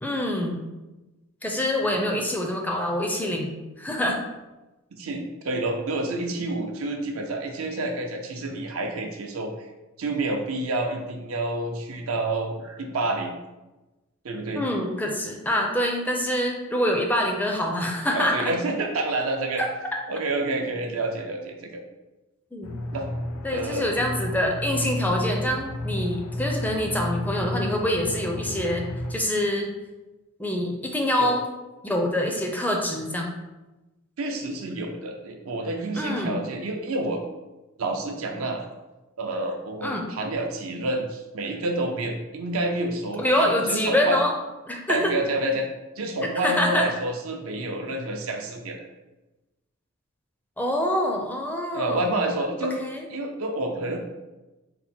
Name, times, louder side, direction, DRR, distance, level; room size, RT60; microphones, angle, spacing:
voice 1, 0.0-0.6 1.4-3.5 3.8-4.2 14.6-18.5 22.5-22.8 23.4-29.7 30.4-31.4 31.8-33.3 35.9-36.3 39.8-40.0 43.2-44.3 44.7-45.1 46.4-46.9 50.6-52.1 52.6-53.1, left 1 dB, 10° left, 1 dB, 0.4 m, -25 dB
voice 2, 1.8-2.2 5.0-9.7 10.0-13.4 14.2-14.7 18.1-19.6 20.1-21.8 22.9-23.1 23.5-23.9 31.2-31.3 34.2-37.2 37.8-38.7 39.2-44.2 44.9-45.7 46.0-48.9 51.7-52.8 53.1-54.0, right 2 dB, 70° right, 3 dB, 0.6 m, -28 dB
Aircraft, 22.6-29.1, left 1 dB, 90° left, 0.4 m, -32 dB
4.2 x 2.1 x 4.3 m, 1.1 s
head